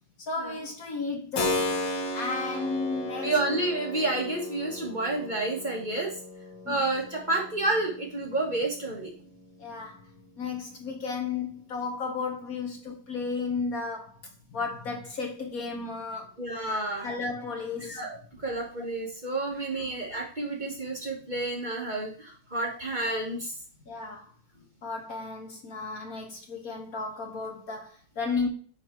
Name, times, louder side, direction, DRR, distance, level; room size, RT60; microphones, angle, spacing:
voice 1, 0.2-1.7 2.1-3.6 6.6-6.8 9.6-10.0 10.4-14.2 14.5-16.4 17.0-18.0 19.7-19.8 23.9-24.3 24.8-28.5, left 4 dB, 55° left, 1.5 m, -33 dB
Keyboard (musical), 1.3-10.0, left 2 dB, 80° left, 2.0 m, -35 dB
voice 2, 3.2-6.1 6.7-9.1 16.4-17.1 17.9-23.5, right 2 dB, 25° right, 1.6 m, -30 dB
9.5 x 3.9 x 4.6 m
omnidirectional pair, 2.0 m